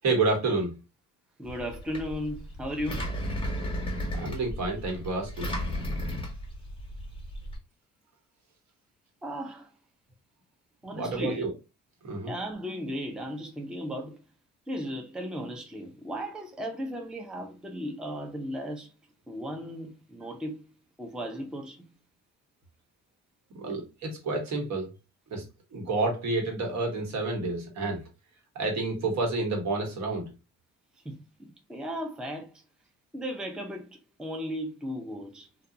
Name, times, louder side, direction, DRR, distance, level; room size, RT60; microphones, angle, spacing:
voice 1, 0.0-0.7 4.1-5.5 10.9-11.5 12.0-12.3 23.6-24.9 25.3-25.4 25.7-28.0 28.5-30.3, right 3 dB, 65° right, 1.2 m, -29 dB
voice 2, 1.4-3.0 9.2-9.7 10.8-11.5 12.3-14.1 14.7-18.9 19.3-20.6 21.0-21.9 31.0-32.5 33.1-35.5, equal, 5° right, 0.5 m, -36 dB
Engine, 1.5-7.6, equal, 15° left, 1.1 m, -34 dB
2.4 x 2.3 x 2.7 m
cardioid pair, 90°, 30 cm